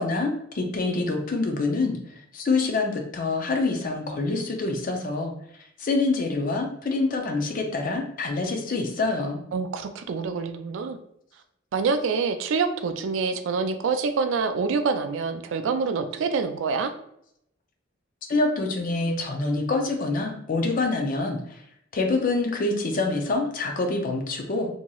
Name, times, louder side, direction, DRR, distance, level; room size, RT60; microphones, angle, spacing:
voice 1, 0.0-5.3 5.8-9.4 18.3-21.6 21.9-24.7, left 3 dB, 45° left, 3 dB, 0.4 m, -26 dB
voice 2, 9.5-11.0 11.7-16.9, right 5 dB, 75° right, 8 dB, 0.3 m, -26 dB
2.9 x 2.7 x 2.3 m, 0.73 s
head